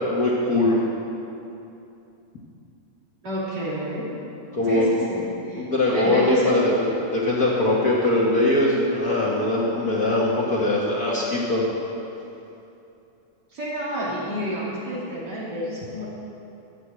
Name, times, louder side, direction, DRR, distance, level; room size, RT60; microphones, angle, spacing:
voice 1, 0.1-0.8 4.5-4.9 5.6-11.6, left 1 dB, 45° left, -5 dB, 1.3 m, -21 dB
voice 2, 3.2-4.1 4.6-5.7 5.9-6.5 13.5-16.1, equal, 30° right, -7 dB, 3.5 m, -29 dB
13.0 x 8.2 x 7.7 m, 2.8 s
omnidirectional pair, 3.7 m